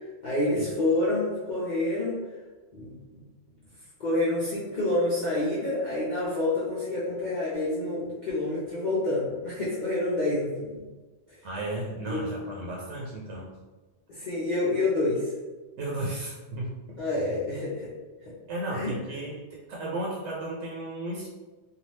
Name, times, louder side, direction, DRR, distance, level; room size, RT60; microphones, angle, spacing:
voice 1, 0.2-2.2 2.7-3.0 4.0-10.8 12.1-12.2 14.1-15.3 17.0-17.9 18.7-18.9, left 2 dB, 50° left, -8 dB, 0.6 m, -28 dB
voice 2, 11.4-13.5 15.8-17.0 18.5-19.4 19.7-21.3, right 1 dB, 80° right, -3 dB, 0.9 m, -34 dB
2.7 x 2.3 x 3.1 m, 1.2 s
omnidirectional pair, 1.1 m